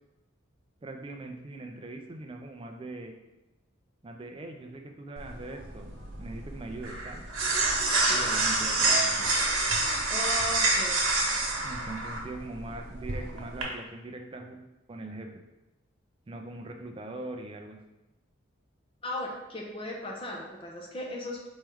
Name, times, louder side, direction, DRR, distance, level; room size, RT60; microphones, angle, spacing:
voice 1, 0.8-3.1 4.0-7.2 8.1-9.3 11.6-15.4 16.3-17.8, right 2 dB, 25° right, 3 dB, 0.4 m, -41 dB
sound 1, 5.2-13.6, right 2 dB, 90° right, 1.1 m, -28 dB
voice 2, 10.1-11.0 19.0-21.5, left 1 dB, 25° left, -2 dB, 0.7 m, -36 dB
4.4 x 3.2 x 3.5 m, 1.0 s
head